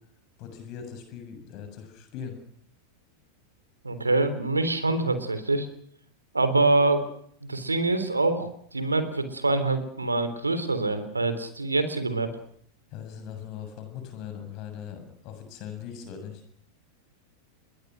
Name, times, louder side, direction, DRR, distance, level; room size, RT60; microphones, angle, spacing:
voice 1, 0.4-2.4 12.9-16.4, left 8 dB, 40° left, 7 dB, 7.5 m, -40 dB
voice 2, 3.8-5.7 6.3-7.0 7.4-12.3, right 2 dB, 80° right, 11 dB, 3.7 m, -25 dB
27.0 x 23.0 x 6.4 m, 0.63 s
figure-of-eight pair, 90°, 0 cm